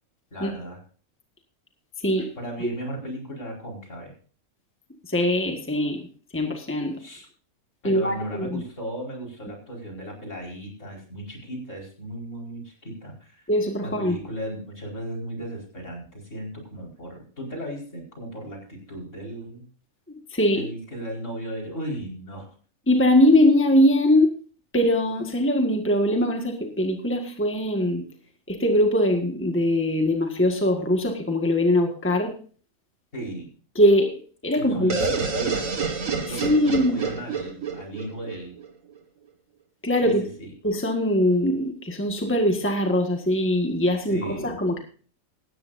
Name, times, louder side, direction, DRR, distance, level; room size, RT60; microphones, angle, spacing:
voice 1, 0.3-0.8 2.4-4.1 7.0-7.3 7.8-13.4 13.8-19.6 20.5-22.5 33.1-33.5 34.5-35.7 36.2-38.6 40.0-40.1 40.4-40.5 44.0-44.5, right 1 dB, 60° left, -1 dB, 5.2 m, -36 dB
voice 2, 5.1-6.0 6.3-7.0 7.8-8.6 13.5-14.2 20.1-20.7 22.9-24.3 24.7-28.0 28.5-32.3 33.7-35.0 36.3-37.0 39.8-40.2 40.6-44.8, left 1 dB, 10° left, 3 dB, 1.6 m, -22 dB
sound 1, 34.9-38.7, right 4 dB, 70° right, 2.1 m, -28 dB
17.5 x 14.0 x 2.6 m, 0.42 s
omnidirectional pair, 1.5 m